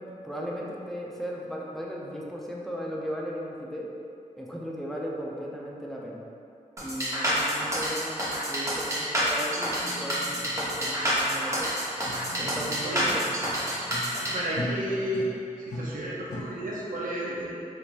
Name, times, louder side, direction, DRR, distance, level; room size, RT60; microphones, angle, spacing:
voice 1, 0.0-3.9 4.4-6.2 6.8-11.7 12.3-13.4, equal, ahead, -3 dB, 0.4 m, -36 dB
sound 1, 6.8-14.3, equal, 20° right, 1.0 m, -28 dB
sound 2, 9.8-14.2 14.5-15.3 15.7-16.4, equal, 65° left, 0.7 m, -39 dB
voice 2, 12.8-13.1 14.2-15.3 15.6-17.6, right 1 dB, 85° right, -5 dB, 0.6 m, -32 dB
3.3 x 2.8 x 2.4 m, 2.6 s
wide cardioid pair, 80°, 14 cm